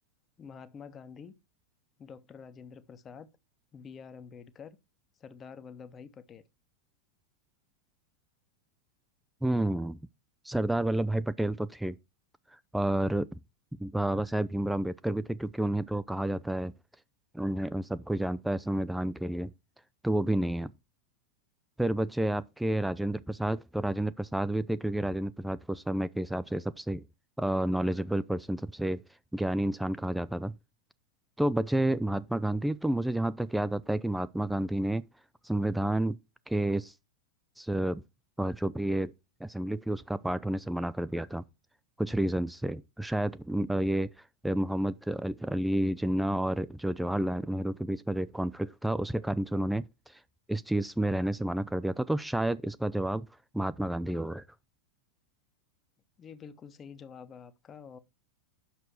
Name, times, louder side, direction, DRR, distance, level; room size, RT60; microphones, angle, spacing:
voice 1, 0.4-1.3 2.0-3.3 3.7-4.8 5.2-6.4 56.2-58.0, left 6 dB, 25° left, 1.0 m, -47 dB
voice 2, 9.4-10.0 10.5-11.9 12.7-13.4 13.8-16.7 17.3-19.5 20.0-20.7 21.8-27.0 27.4-29.0 29.3-30.5 31.4-35.0 35.4-36.2 36.5-36.9 37.6-38.0 38.4-39.1 39.4-41.4 42.0-44.1 44.4-49.9 50.5-53.3 53.5-54.4, right 1 dB, 5° right, 0.4 m, -30 dB
8.8 x 6.6 x 4.5 m
figure-of-eight pair, 90°, 0 cm